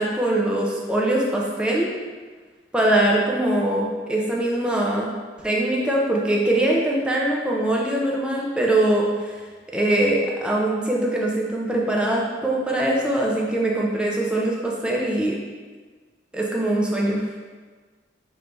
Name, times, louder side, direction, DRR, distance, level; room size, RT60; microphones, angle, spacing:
voice 1, 0.0-1.9 2.7-5.1 5.4-9.4 9.7-15.4 16.3-17.3, right 1 dB, 5° right, -3 dB, 0.5 m, -22 dB
3.2 x 2.6 x 4.4 m, 1.4 s
head